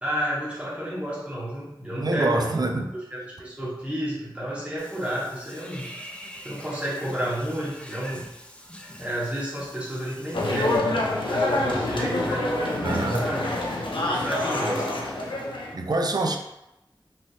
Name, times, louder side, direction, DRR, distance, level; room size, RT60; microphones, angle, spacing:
voice 1, 0.0-2.6 3.1-5.9 6.4-8.3 9.0-11.0 11.3-13.5 14.1-15.0, equal, 15° right, -8 dB, 1.2 m, -31 dB
voice 2, 2.0-2.9 12.8-13.3 15.7-16.4, right 2 dB, 55° right, 3 dB, 0.4 m, -25 dB
Water / Bathtub (filling or washing), 4.8-10.8, equal, 15° left, 0.4 m, -44 dB
sound 1, 10.3-15.7, left 2 dB, 85° left, 0.5 m, -26 dB
3.0 x 2.9 x 2.7 m, 0.90 s
wide cardioid pair, 60°, 8 cm